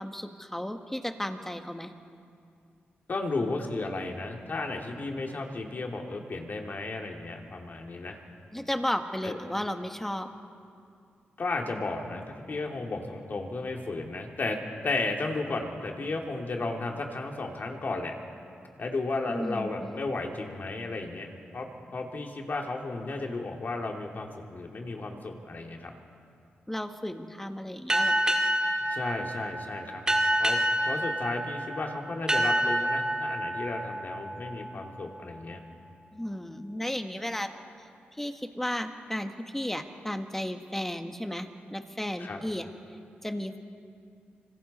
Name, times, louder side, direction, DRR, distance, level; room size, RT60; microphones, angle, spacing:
voice 1, 0.0-1.9 8.5-10.3 19.3-20.0 26.7-28.2 36.1-37.5 38.2-42.7 43.2-43.6, left 1 dB, 10° left, 6 dB, 1.5 m, -34 dB
voice 2, 3.1-8.2 9.2-9.3 11.4-14.6 14.8-18.1 18.8-25.9 28.9-30.0 30.4-30.6 30.8-35.6 42.2-42.4, left 3 dB, 50° left, 1 dB, 2.7 m, -34 dB
sound 1, 27.9-35.2, right 1 dB, 20° right, 2.5 m, -28 dB
26.0 x 25.0 x 4.3 m, 2.4 s
cardioid pair, 80°, 4 cm